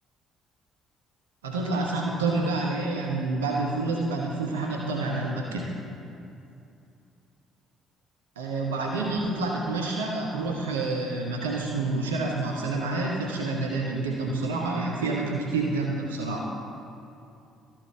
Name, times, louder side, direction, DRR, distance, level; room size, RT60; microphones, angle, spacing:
voice 1, 1.4-5.7 8.4-16.6, right 3 dB, 75° right, -2 dB, 0.8 m, -28 dB
13.5 x 4.5 x 4.5 m, 2.7 s
figure-of-eight pair, 50°, 0 cm